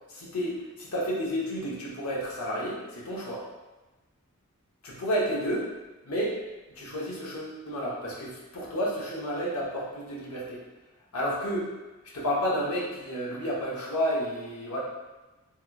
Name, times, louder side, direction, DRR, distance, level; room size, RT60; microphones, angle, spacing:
voice 1, 0.1-3.5 4.8-5.7 6.0-6.4 6.7-10.6 11.1-11.7 12.1-14.8, equal, 90° left, -4 dB, 0.8 m, -31 dB
3.4 x 2.9 x 2.3 m, 1.1 s
head